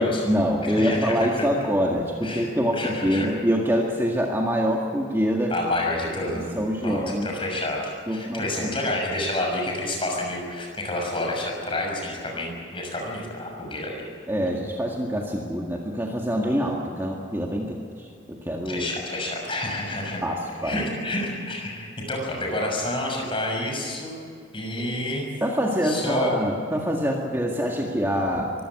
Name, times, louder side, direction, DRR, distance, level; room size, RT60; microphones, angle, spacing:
voice 1, 0.0-5.5 6.3-7.3 8.1-8.8 14.3-18.8 20.2-20.8 24.8-24.9 25.4-28.5, equal, 10° right, -1 dB, 1.8 m, -25 dB
voice 2, 0.7-1.4 2.2-2.5 2.7-3.3 5.5-6.6 6.8-14.0 18.6-20.2 20.6-24.2 24.5-25.3 25.8-26.3, left 1 dB, 25° left, 0 dB, 6.5 m, -29 dB
23.5 x 16.0 x 9.9 m, 2.3 s
head